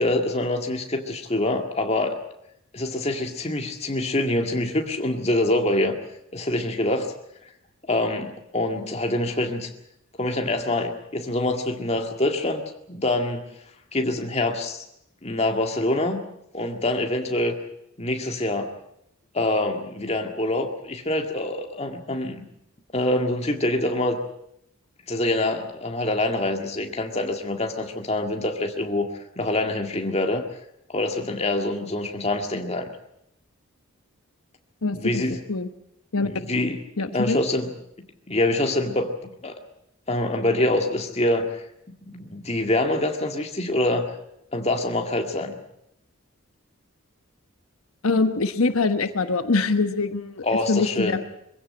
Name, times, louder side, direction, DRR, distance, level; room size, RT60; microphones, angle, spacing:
voice 1, 0.0-2.2 2.7-6.0 6.3-7.1 7.9-9.7 10.2-13.5 13.9-14.8 15.2-16.2 16.5-17.6 18.0-18.7 19.3-22.5 22.9-24.2 25.1-29.1 29.4-30.4 30.9-32.9 34.9-35.4 36.2-36.8 37.1-37.7 38.3-39.5 40.1-41.6 42.1-44.1 44.5-45.5 50.4-51.2, left 1 dB, 30° left, 4 dB, 2.0 m, -25 dB
voice 2, 34.8-35.2 35.5-35.7 36.1-36.3 37.0-37.4 48.0-51.3, left 3 dB, 90° left, 9 dB, 1.1 m, -24 dB
22.5 x 16.0 x 8.7 m, 0.77 s
head